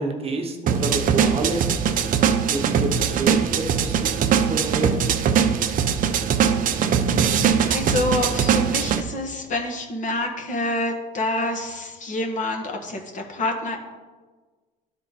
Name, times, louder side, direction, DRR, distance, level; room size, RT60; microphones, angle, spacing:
voice 1, 0.0-1.6 2.5-5.0, right 2 dB, 35° right, 3 dB, 1.1 m, -28 dB
sound 1, 0.7-9.0, right 7 dB, 55° right, 0.6 m, -21 dB
voice 2, 6.8-13.8, left 2 dB, 50° left, 3 dB, 1.5 m, -28 dB
12.5 x 4.4 x 4.1 m, 1.4 s
cardioid pair, 110°, 17 cm